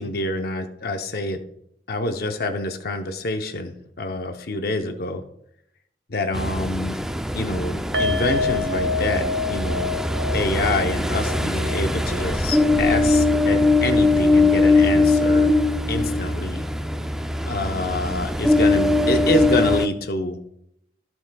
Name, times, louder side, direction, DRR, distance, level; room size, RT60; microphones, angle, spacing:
voice 1, 0.0-1.4 1.9-5.2 6.1-7.0 7.3-10.0 10.3-15.5 15.9-16.6 17.4-20.4, left 2 dB, 60° left, 6 dB, 0.7 m, -26 dB
Ocean, 6.3-19.9, left 2 dB, 5° right, 0.3 m, -21 dB
sound 1, 7.9-15.1 15.4-15.6 16.0-16.1, left 3 dB, 75° right, 0.9 m, -30 dB
15.5 x 6.1 x 2.3 m, 0.77 s
head